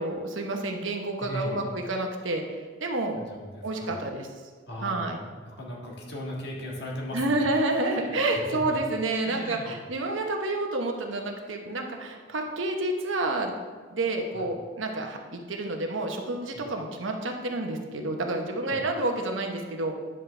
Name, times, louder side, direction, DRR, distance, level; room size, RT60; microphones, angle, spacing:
voice 1, 0.0-2.4 2.8-3.2 3.6-4.3 4.8-5.2 7.1-13.5 13.9-19.9, right 2 dB, 80° right, 3 dB, 1.1 m, -29 dB
voice 2, 1.2-1.7 3.1-3.9 4.7-7.6 7.9-8.8 9.2-9.8 14.3-14.5 16.5-16.7 18.7-18.8, equal, 60° left, -3 dB, 1.8 m, -38 dB
10.0 x 6.5 x 3.4 m, 1.5 s
head